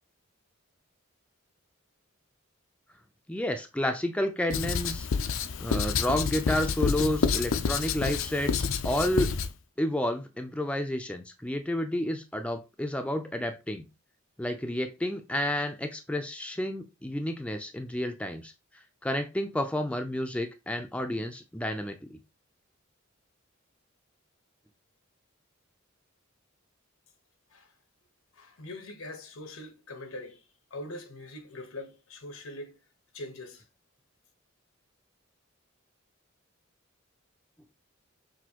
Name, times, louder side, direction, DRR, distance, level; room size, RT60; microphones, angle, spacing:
voice 1, 3.3-5.1 5.6-9.3 9.8-13.9 14.4-18.5 19.0-22.2, left 1 dB, 5° left, 0.4 m, -30 dB
Writing, 4.5-9.5, left 5 dB, 70° left, 0.5 m, -28 dB
voice 2, 28.3-32.8 33.1-33.6, left 2 dB, 90° left, 1.1 m, -42 dB
6.1 x 2.6 x 2.9 m
head